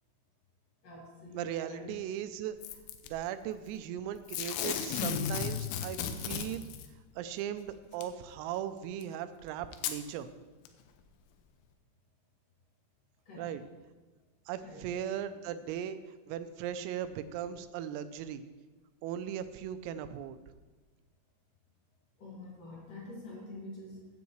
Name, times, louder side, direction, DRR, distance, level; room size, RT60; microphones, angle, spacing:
voice 1, 0.8-2.0 13.3-13.5 14.6-14.9 22.2-24.1, left 2 dB, 50° left, -5 dB, 3.2 m, -46 dB
voice 2, 1.3-2.6 3.1-6.7 7.2-10.3 13.4-13.6 14.5-16.0 16.3-18.4 19.0-20.4, right 10 dB, 90° right, 10 dB, 3.3 m, -38 dB
Packing tape duct tape / Tearing, 2.6-3.1 4.3-6.9 8.0-8.1 9.0-9.1 9.7-10.0 10.7-10.8, left 8 dB, 85° left, 3.3 m, -34 dB
15.0 x 9.5 x 3.1 m, 1.3 s
omnidirectional pair, 5.8 m